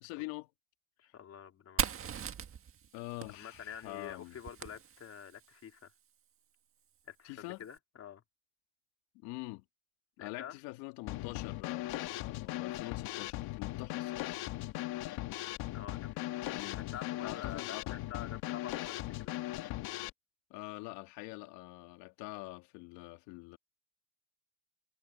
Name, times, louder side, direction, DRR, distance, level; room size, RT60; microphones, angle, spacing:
voice 1, 0.0-0.5 2.9-4.3 7.2-7.6 9.2-9.6 10.2-14.3 16.5-16.8 17.2-18.0 20.5-23.6, left 22 dB, 85° left, 1.9 m, -45 dB
voice 2, 1.0-1.9 3.3-5.9 7.1-8.2 10.2-10.6 15.7-19.3, left 9 dB, 35° left, 3.7 m, -48 dB
Fire, 1.8-5.5, right 8 dB, 30° right, 1.7 m, -39 dB
Drum kit / Snare drum, 11.1-20.1, left 16 dB, 55° left, 1.5 m, -38 dB
cardioid pair, 150°, 45 cm